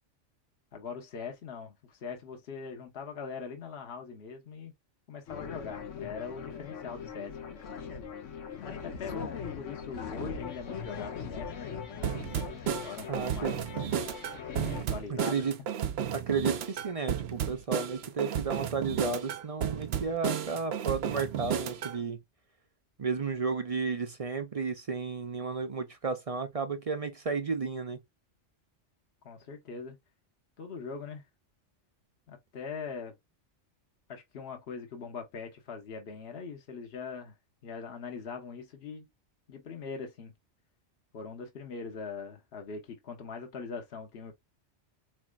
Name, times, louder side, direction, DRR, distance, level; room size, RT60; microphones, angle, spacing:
voice 1, 0.7-4.7 5.1-7.4 8.6-11.7 12.8-13.7 14.7-15.5 29.2-30.0 30.6-31.2 32.3-33.2 34.1-37.3 37.6-39.1 39.5-40.3 41.1-44.3, left 5 dB, 60° left, 1.3 m, -41 dB
sound 1, 5.3-14.9, left 6 dB, 85° left, 1.2 m, -40 dB
sound 2, 12.0-22.0, right 8 dB, 65° right, 0.8 m, -33 dB
voice 2, 13.1-13.5 15.1-15.6 16.1-22.2 23.0-28.0, right 5 dB, 45° right, 0.5 m, -33 dB
4.2 x 3.3 x 2.3 m
omnidirectional pair, 1.3 m